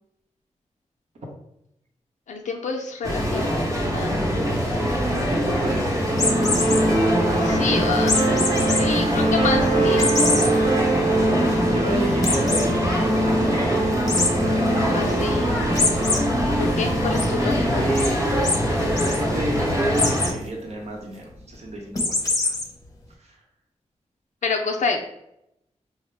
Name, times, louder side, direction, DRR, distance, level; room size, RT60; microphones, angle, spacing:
voice 1, 2.3-4.2 4.7-5.0 7.4-8.2 8.7-10.3 14.9-15.5 16.6-17.8 24.4-25.0, left 4 dB, 85° left, 2 dB, 0.4 m, -28 dB
sound 1, 3.0-20.3, equal, 25° right, 0.9 m, -24 dB
voice 2, 5.0-6.5 11.6-14.0 17.4-18.2 19.0-22.6 23.2-23.3, right 1 dB, 60° right, 0 dB, 0.9 m, -31 dB
sound 2, 6.1-6.8 8.1-8.8 9.2-9.3 10.0-10.5 11.0-11.1 11.3-11.4 12.2-12.7 14.1-14.3 15.7-16.2 16.6-17.2 17.9-18.1 18.4-18.6 18.9-19.2 19.9-20.3 21.9-22.6, left 3 dB, 25° left, 0.6 m, -23 dB
sound 3, 6.1-19.7, right 1 dB, 90° right, 1.3 m, -24 dB
4.7 x 2.0 x 3.2 m, 0.80 s
wide cardioid pair, 115°, 12 cm